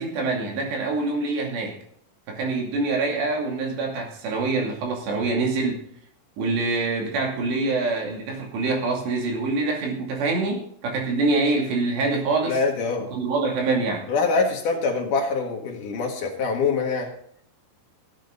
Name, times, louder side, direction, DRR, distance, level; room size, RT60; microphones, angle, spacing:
voice 1, 0.0-1.8 2.3-5.8 6.4-12.6 13.1-14.1, right 3 dB, 60° right, 1 dB, 4.4 m, -25 dB
voice 2, 12.5-13.1 14.1-17.1, left 4 dB, 60° left, 1 dB, 2.2 m, -24 dB
16.5 x 9.0 x 4.0 m, 0.64 s
omnidirectional pair, 6.0 m